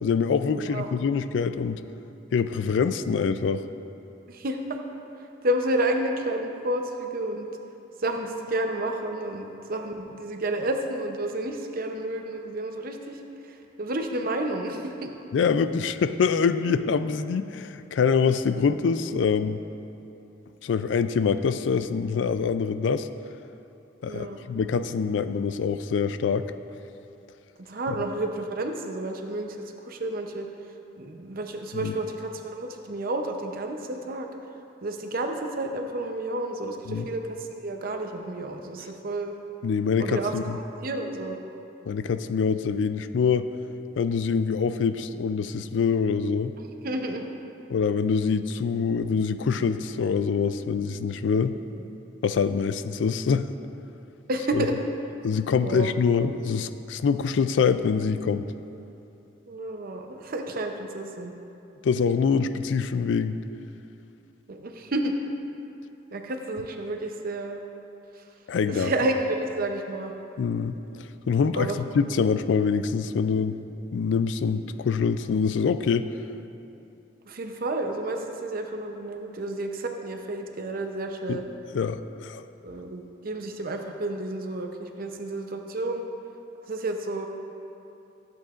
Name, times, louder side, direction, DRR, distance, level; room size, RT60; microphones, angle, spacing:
voice 1, 0.0-1.8 2.3-3.7 15.3-19.6 20.6-23.1 24.0-26.5 31.7-31.9 36.9-37.1 39.6-40.6 41.9-43.5 44.0-46.5 47.7-51.6 52.2-53.5 54.5-54.7 55.2-58.5 61.8-63.4 68.5-68.9 70.4-73.6 73.9-76.1 81.3-81.4 81.7-82.4, left 5 dB, 75° left, 12 dB, 0.4 m, -25 dB
voice 2, 0.6-0.9 4.3-4.8 5.2-7.5 8.0-15.1 24.1-24.4 27.6-30.5 31.0-34.3 34.8-39.4 40.0-41.4 46.8-47.2 51.5-51.6 54.3-54.7 55.6-55.9 59.5-61.3 64.5-65.1 66.1-67.6 68.2-68.3 68.7-70.1 71.5-71.8 77.3-81.5 82.6-86.0 86.7-87.3, right 1 dB, 55° right, 4 dB, 0.7 m, -31 dB
14.0 x 7.9 x 2.5 m, 2.8 s
head